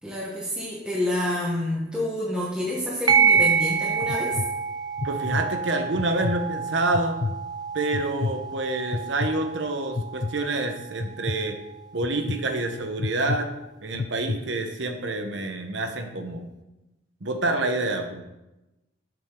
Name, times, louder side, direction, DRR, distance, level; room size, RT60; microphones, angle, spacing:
voice 1, 0.0-4.4, left 1 dB, 5° right, -5 dB, 1.2 m, -28 dB
sound 1, 3.1-3.5 4.0-4.5 5.0-5.4 5.9-6.4 6.9-7.4 7.9-8.4 8.9-9.3 10.0-10.3 11.0-11.4 12.0-12.4 13.0-13.4 13.9-14.4, left 3 dB, 35° left, 0.3 m, -29 dB
sound 2, 3.1-12.1, right 6 dB, 20° right, 0.5 m, -27 dB
voice 2, 5.0-7.2 7.7-11.6 11.9-13.5 13.8-16.5 17.2-18.2, right 2 dB, 70° right, 6 dB, 1.0 m, -27 dB
7.8 x 7.3 x 3.8 m, 0.97 s
head